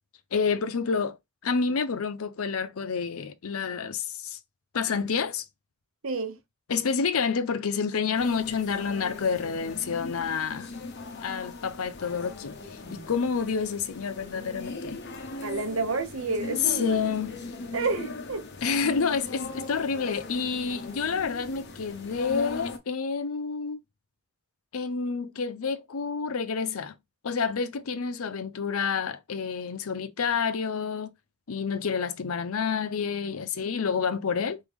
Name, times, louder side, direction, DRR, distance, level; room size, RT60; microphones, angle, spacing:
voice 1, 0.3-1.2 1.4-4.4 4.7-5.4 6.7-10.7 11.2-12.5 12.9-15.0 16.7-17.3 18.6-23.8 24.7-26.9 27.2-31.1 31.5-34.6, left 5 dB, 85° left, 0.6 m, -29 dB
voice 2, 6.0-6.4 15.4-17.0 17.7-18.5, right 3 dB, 70° right, 1.0 m, -30 dB
sound 1, 8.1-22.8, left 3 dB, 55° left, 0.9 m, -40 dB
4.0 x 3.7 x 3.5 m
head